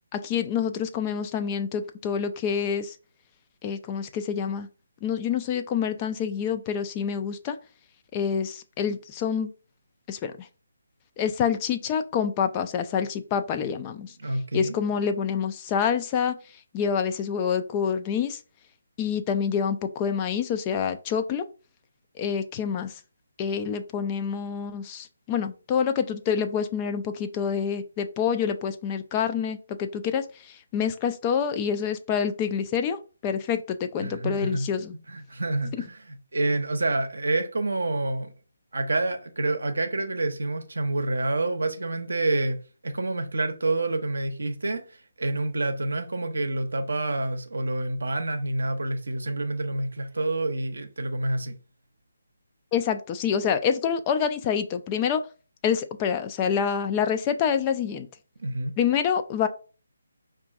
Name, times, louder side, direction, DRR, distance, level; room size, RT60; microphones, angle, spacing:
voice 1, 0.1-3.0 3.6-4.7 5.0-7.6 8.1-9.5 10.1-10.5 11.2-14.1 14.5-16.4 16.7-18.4 19.0-21.4 22.2-23.0 23.4-34.9 52.7-55.2 55.6-58.1 58.8-59.5, left 7 dB, 20° left, 0.3 m, -27 dB
voice 2, 14.0-14.7 34.0-34.7 35.1-38.3 38.7-51.6 58.4-58.7, right 2 dB, 65° right, 0.6 m, -28 dB
5.1 x 2.4 x 2.4 m
figure-of-eight pair, 145°, 0 cm